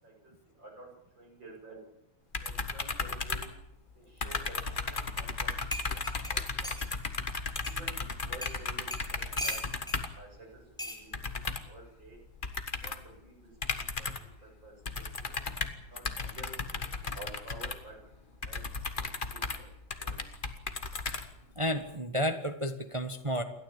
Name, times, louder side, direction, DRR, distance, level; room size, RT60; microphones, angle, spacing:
voice 1, 0.0-0.9 1.2-1.8 2.4-3.5 3.9-5.6 5.9-6.7 7.6-9.6 9.9-12.2 12.7-13.3 13.7-14.1 14.4-15.4 15.9-18.0 18.4-18.6 19.1-19.7 20.0-20.2, right 2 dB, 75° right, 0 dB, 9.0 m, -51 dB
sound 1, 2.3-3.9 4.2-10.2 11.1-11.8 12.4-13.1 13.6-14.4 14.9-21.7, left 4 dB, 30° left, 1.5 m, -35 dB
sound 2, 5.3-5.4 5.7-6.9 7.6-7.8 8.4-8.6 8.9-10.0 10.8-11.0 12.1-12.4, equal, ahead, 4.2 m, -38 dB
voice 2, 21.5-23.4, equal, 20° right, 7 dB, 1.3 m, -31 dB
28.5 x 13.0 x 8.9 m, 0.79 s
omnidirectional pair, 2.0 m